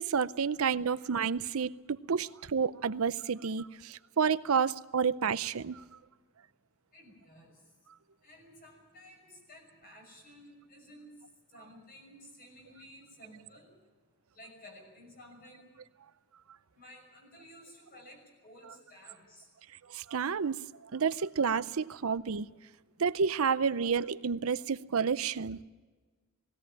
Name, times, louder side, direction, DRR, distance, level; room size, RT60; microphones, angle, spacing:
voice 1, 0.0-5.8 19.9-22.5 23.0-25.6, right 6 dB, 80° right, 15 dB, 0.6 m, -30 dB
voice 2, 6.9-7.5 8.2-11.2 11.5-13.7 14.4-15.6 16.7-19.5, equal, 40° left, 2 dB, 6.2 m, -54 dB
19.0 x 17.0 x 8.8 m, 1.4 s
head